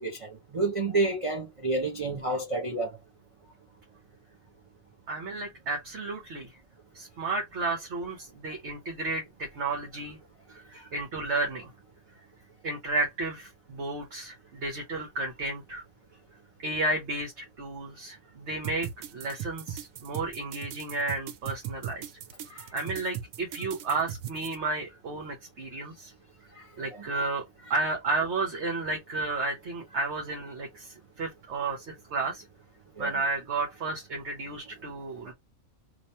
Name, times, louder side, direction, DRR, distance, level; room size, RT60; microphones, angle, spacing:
voice 1, 0.0-2.9 26.9-27.0 33.0-33.1, right 2 dB, 35° right, 0.6 m, -29 dB
voice 2, 5.1-6.6 6.9-10.2 10.5-11.7 12.6-15.8 16.6-22.0 22.7-26.1 26.8-27.4 27.7-32.4 33.0-35.3, right 3 dB, 60° right, 1.3 m, -32 dB
sound 1, 18.6-24.6, right 9 dB, 90° right, 1.0 m, -38 dB
3.0 x 2.5 x 4.1 m
omnidirectional pair, 1.4 m